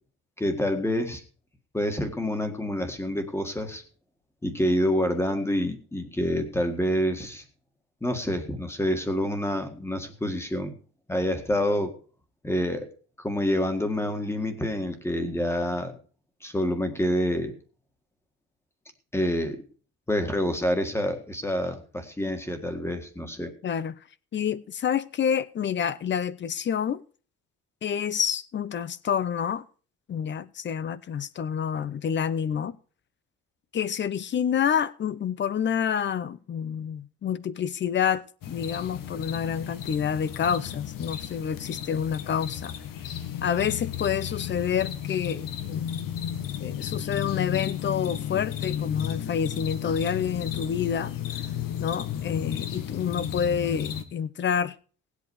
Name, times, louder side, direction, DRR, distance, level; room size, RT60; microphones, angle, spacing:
voice 1, 0.4-1.2 1.7-3.8 4.4-7.4 8.0-10.7 11.1-11.9 12.4-12.9 13.2-16.0 16.4-17.5 19.1-19.6 20.1-23.5, equal, 5° left, 1.8 m, -27 dB
voice 2, 23.6-24.0 24.3-27.0 27.8-29.6 30.1-32.8 33.7-42.7 43.4-45.9 46.6-51.1 51.8-54.8, left 8 dB, 35° left, 0.7 m, -28 dB
sound 1, 38.4-54.0, left 10 dB, 75° left, 1.8 m, -33 dB
18.5 x 8.3 x 4.7 m
cardioid pair, 165°, 34 cm